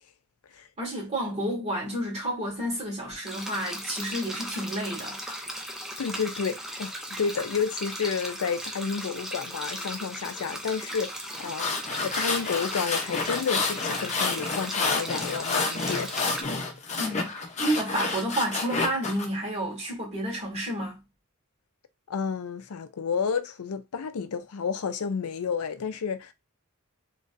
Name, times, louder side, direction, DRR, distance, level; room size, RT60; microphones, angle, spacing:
voice 1, 0.8-5.4 17.0-21.0, right 1 dB, 30° right, 2.0 m, -30 dB
sound 1, 3.3-16.4, equal, ahead, 0.6 m, -37 dB
voice 2, 6.0-11.7 12.0-16.2 22.1-26.3, left 6 dB, 70° left, 0.5 m, -31 dB
sound 2, 11.3-19.3, left 3 dB, 30° left, 0.9 m, -29 dB
3.9 x 3.1 x 2.6 m
head